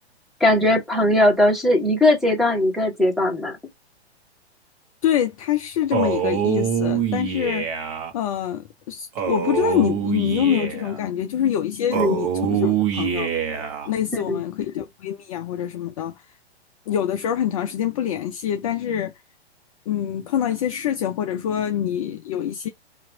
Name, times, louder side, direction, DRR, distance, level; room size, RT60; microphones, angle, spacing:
voice 1, 0.4-3.6 11.9-12.2 14.1-14.4, left 1 dB, ahead, 1.0 m, -19 dB
voice 2, 5.0-7.7 8.1-13.3 13.9-16.1 16.9-19.1 19.9-22.7, left 10 dB, 35° left, 0.4 m, -25 dB
Male speech man speaking, 5.9-8.1 9.2-11.0 11.9-13.9, right 8 dB, 40° right, 1.1 m, -25 dB
2.9 x 2.5 x 4.3 m
hypercardioid pair, 120°, 33 cm